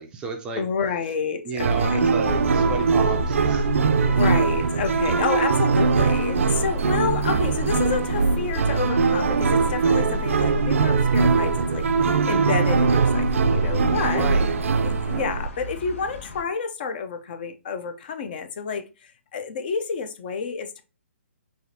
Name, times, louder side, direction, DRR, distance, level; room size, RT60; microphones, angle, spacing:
voice 1, 0.0-0.6 1.4-3.7 14.0-14.5, right 4 dB, 10° right, 0.4 m, -31 dB
voice 2, 0.6-2.2 4.1-14.3 14.8-20.8, left 5 dB, 40° left, 0.6 m, -29 dB
sound 1, 1.6-15.5, right 4 dB, 75° right, 0.4 m, -21 dB
sound 2, 2.2-16.4, left 3 dB, 80° left, 1.4 m, -40 dB
4.8 x 2.9 x 2.7 m
hypercardioid pair, 155°, 7 cm